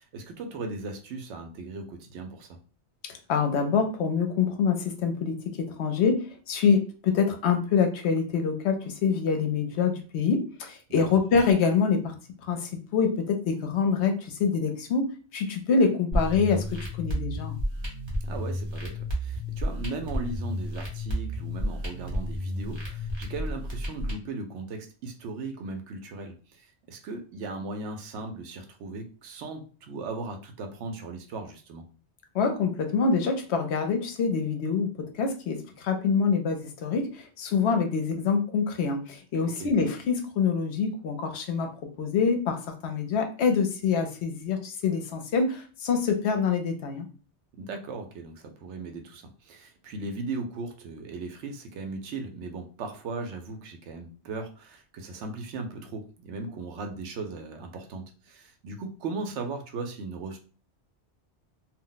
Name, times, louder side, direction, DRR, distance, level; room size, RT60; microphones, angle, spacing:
voice 1, 0.0-2.5 11.1-11.2 18.2-31.8 39.4-39.7 47.6-60.4, right 3 dB, 85° right, 5 dB, 0.9 m, -37 dB
voice 2, 3.0-12.1 12.4-15.0 15.3-17.6 32.3-34.9 35.2-41.7 42.0-47.1, left 5 dB, 75° left, 6 dB, 0.9 m, -26 dB
sound 1, 16.1-24.1, equal, 25° right, 0.9 m, -31 dB
2.4 x 2.1 x 3.8 m, 0.38 s
omnidirectional pair, 1.1 m